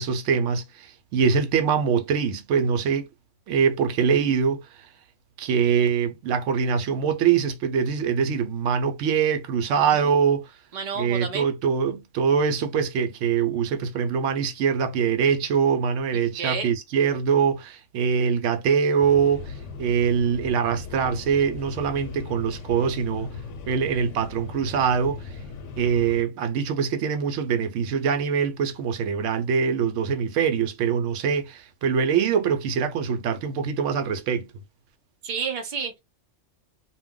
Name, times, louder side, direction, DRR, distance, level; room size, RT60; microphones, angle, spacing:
voice 1, 0.0-3.1 3.5-4.9 5.4-10.5 11.0-23.3 23.7-25.4 25.8-34.5, right 6 dB, 90° right, 0.9 m, -23 dB
voice 2, 10.7-11.5 16.4-16.7 35.2-36.0, right 5 dB, 50° right, 0.7 m, -30 dB
sound 1, 19.0-26.2, left 4 dB, 90° left, 1.0 m, -38 dB
2.3 x 2.1 x 3.6 m
omnidirectional pair, 1.2 m